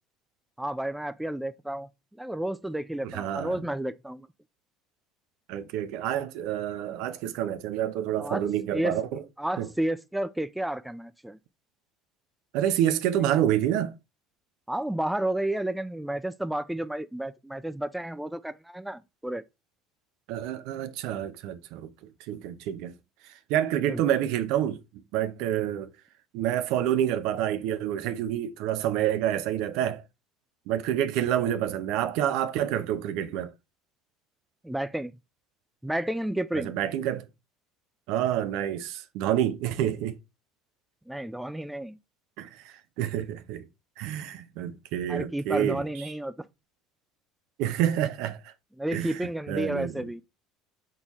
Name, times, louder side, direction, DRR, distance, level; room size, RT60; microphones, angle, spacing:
voice 1, 0.6-1.9 2.2-4.3 8.2-8.5 8.7-9.0 9.4-11.4 14.7-19.4 23.8-24.0 34.6-35.2 35.8-36.7 41.1-42.0 45.1-46.3 48.8-50.2, right 1 dB, 5° right, 0.3 m, -31 dB
voice 2, 3.0-3.6 5.5-9.2 9.6-9.7 12.5-13.9 20.3-21.9 22.3-22.9 23.5-24.8 25.1-25.9 26.3-30.0 30.7-33.5 36.5-37.3 38.1-40.2 42.4-43.6 44.0-45.8 47.6-48.5 48.9-49.9, right 11 dB, 70° right, 0.5 m, -28 dB
4.0 x 3.7 x 3.0 m
hypercardioid pair, 75°, 0 cm